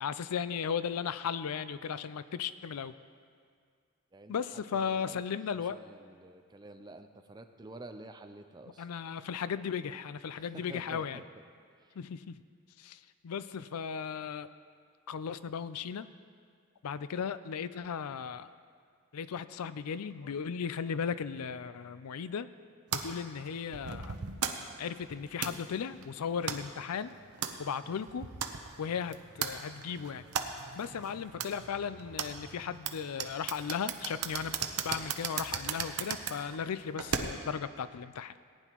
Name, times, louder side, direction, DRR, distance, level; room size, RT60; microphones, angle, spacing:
voice 1, 0.0-2.9 4.3-5.8 8.8-11.2 12.0-12.4 12.8-14.5 15.1-16.1 16.8-18.5 19.1-22.5 22.9-24.2 24.8-27.1 27.6-28.3 28.8-30.3 30.7-34.5 34.8-38.3, left 7 dB, 85° left, 14 dB, 0.4 m, -36 dB
voice 2, 4.1-5.2 5.7-8.9 10.4-11.3 11.8-12.0, right 2 dB, 20° right, 7 dB, 0.4 m, -49 dB
sound 1, 22.9-37.6, right 7 dB, 90° right, 0.8 m, -38 dB
18.5 x 10.0 x 3.0 m, 2.1 s
head